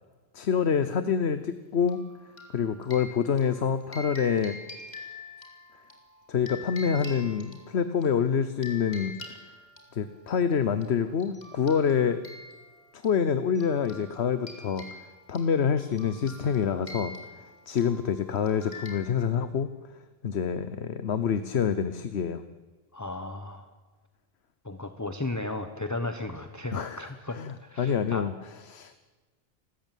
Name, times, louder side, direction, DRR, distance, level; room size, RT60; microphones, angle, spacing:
voice 1, 0.3-2.0 2.5-4.6 6.3-9.2 9.9-12.2 12.9-14.8 15.3-17.1 17.7-19.7 20.2-22.4 26.7-27.0 27.3-28.3 28.7-28.9, left 7 dB, 85° left, 11 dB, 1.2 m, -26 dB
sound 1, 1.9-8.1 8.6-10.4 10.8-10.9 11.2-19.0, left 1 dB, 40° left, 3.7 m, -45 dB
voice 2, 22.9-23.7 24.6-28.3, left 2 dB, 15° left, 7 dB, 1.1 m, -35 dB
29.0 x 13.5 x 9.2 m, 1.3 s
omnidirectional pair, 1.1 m